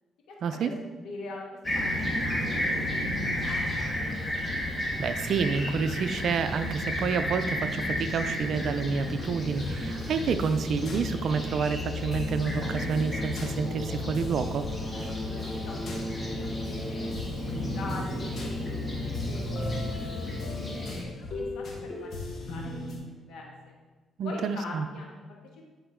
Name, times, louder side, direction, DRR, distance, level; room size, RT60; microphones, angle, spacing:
voice 1, 0.3-0.6 1.0-1.4 1.7-2.8 3.1-4.2 14.9-17.1 17.5-19.8 20.3-20.6 20.9-23.8 24.2-25.7, left 3 dB, 85° left, -1 dB, 1.7 m, -44 dB
Fixed-wing aircraft airplane, 1.6-21.0, left 1 dB, 25° left, 2.2 m, -32 dB
voice 2, 4.7-14.7 24.2-24.9, right 5 dB, 65° right, 10 dB, 0.6 m, -29 dB
sound 1, 9.5-11.8 12.1-16.8 17.1-23.0, left 1 dB, 65° left, 2.0 m, -39 dB
10.0 x 5.1 x 3.7 m, 1.3 s
cardioid pair, 90°, 0 cm